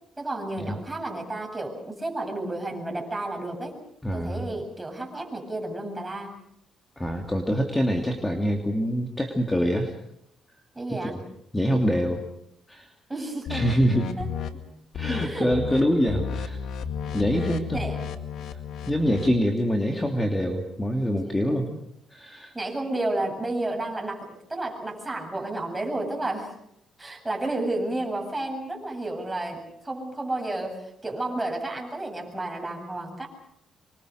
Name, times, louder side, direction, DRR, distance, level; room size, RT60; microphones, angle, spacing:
voice 1, 0.2-3.8 4.1-6.3 10.7-11.2 13.1-13.7 14.2-14.3 15.2-16.3 17.4-18.1 21.5-21.6 22.5-26.5 27.0-33.3, right 2 dB, 15° right, 2 dB, 7.9 m, -32 dB
voice 2, 4.0-4.4 7.0-9.9 11.0-11.2 11.5-12.2 12.7-12.9 13.5-14.1 14.9-16.6 17.1-17.8 18.9-21.7 22.1-22.5, equal, 15° left, 3 dB, 2.9 m, -25 dB
sound 1, 13.5-14.5 14.9-15.2 15.5-15.8 16.1-19.4, left 7 dB, 75° left, 2.1 m, -32 dB
26.0 x 24.0 x 6.6 m, 0.76 s
cardioid pair, 90°, 0 cm